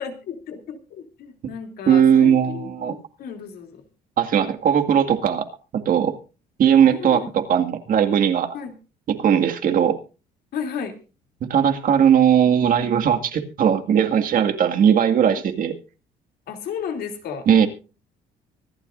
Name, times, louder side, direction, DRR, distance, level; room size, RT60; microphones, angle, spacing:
voice 1, 0.0-3.8 6.9-7.3 8.5-8.7 10.5-10.9 16.5-17.5, left 7 dB, 70° left, 4 dB, 3.0 m, -33 dB
voice 2, 1.9-2.9 4.2-5.5 5.7-6.2 6.6-8.5 9.1-10.0 11.4-15.8 17.5-17.7, right 8 dB, 55° right, 7 dB, 2.1 m, -18 dB
25.0 x 11.5 x 2.6 m, 0.34 s
cardioid pair, 110°, 17 cm